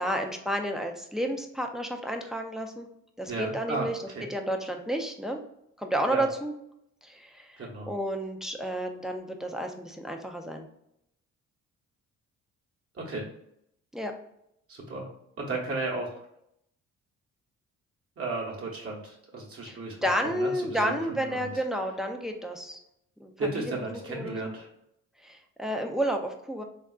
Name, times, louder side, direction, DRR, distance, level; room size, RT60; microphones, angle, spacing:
voice 1, 0.0-2.9 3.2-4.0 4.3-5.4 5.8-6.5 7.0-10.7 13.9-14.1 19.7-22.8 23.2-24.5 25.2-26.6, equal, ahead, 3 dB, 0.4 m, -31 dB
voice 2, 3.3-4.3 6.1-6.3 7.6-7.9 13.0-13.2 14.7-15.1 15.4-16.1 18.2-20.0 20.2-21.5 23.4-24.7, right 3 dB, 50° right, -2 dB, 0.9 m, -34 dB
3.5 x 2.4 x 2.3 m, 0.77 s
cardioid pair, 90°, 30 cm